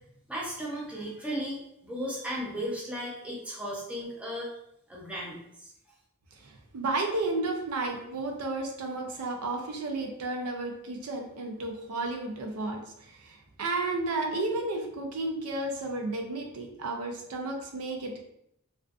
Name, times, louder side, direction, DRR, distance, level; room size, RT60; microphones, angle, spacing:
voice 1, 0.3-4.5 4.9-5.7, equal, 5° right, -4 dB, 0.5 m, -35 dB
voice 2, 6.4-18.2, right 2 dB, 80° right, 2 dB, 0.5 m, -32 dB
2.4 x 2.4 x 2.3 m, 0.76 s
head